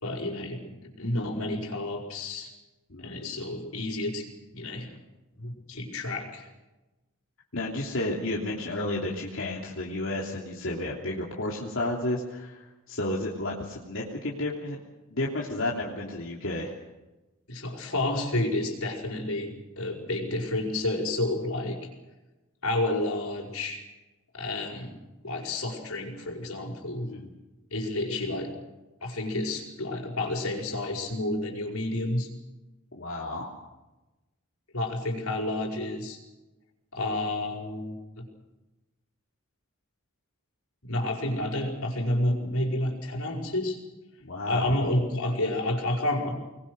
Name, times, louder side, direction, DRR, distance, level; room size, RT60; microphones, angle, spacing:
voice 1, 0.0-2.5 3.0-4.3 4.5-5.0 5.4-6.5 17.5-21.8 22.6-23.8 24.3-24.9 25.2-27.1 27.7-28.5 29.0-32.3 34.7-36.2 36.9-38.3 40.8-43.8 44.5-46.3, left 1 dB, 85° left, 1 dB, 5.3 m, -30 dB
voice 2, 2.9-3.2 7.5-14.8 15.1-16.7 27.1-27.3 32.9-33.5 44.2-44.9, left 1 dB, 65° left, -3 dB, 3.1 m, -32 dB
25.5 x 21.0 x 6.4 m, 1.1 s
head